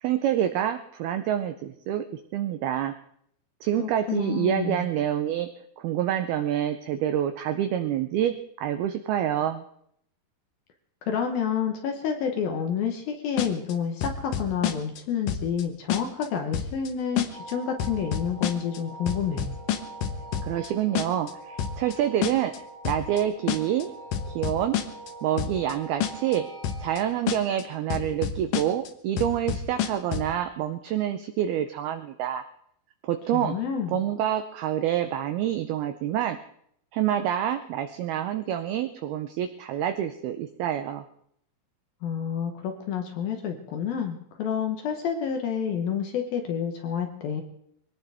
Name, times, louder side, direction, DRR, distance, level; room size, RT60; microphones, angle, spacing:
voice 1, 0.0-2.9 3.6-5.5 5.8-9.6 20.4-22.5 22.9-23.9 24.3-24.8 25.2-26.5 26.8-32.4 33.0-33.6 33.9-36.4 36.9-41.1, right 10 dB, 90° right, 9 dB, 2.2 m, -27 dB
voice 2, 3.8-4.9 11.0-19.5 33.3-34.0 42.0-47.4, left 7 dB, 70° left, 4 dB, 2.4 m, -29 dB
sound 1, 13.4-13.7 14.0-15.0 15.3-15.6 15.9-16.3 16.5-16.9 17.2-17.5 17.8-18.8 19.1-20.7 20.9-21.3 21.6-21.9 22.2-22.6 22.8-23.2 23.5-23.8 24.1-25.1 25.4-25.7 26.0-26.4 26.6-27.0 27.3-27.6 27.9-28.9 29.2-30.3, left 9 dB, 90° left, 1.8 m, -28 dB
sound 2, 17.3-27.1, right 2 dB, 15° left, 6.6 m, -44 dB
23.0 x 18.0 x 3.5 m, 0.70 s
omnidirectional pair, 5.4 m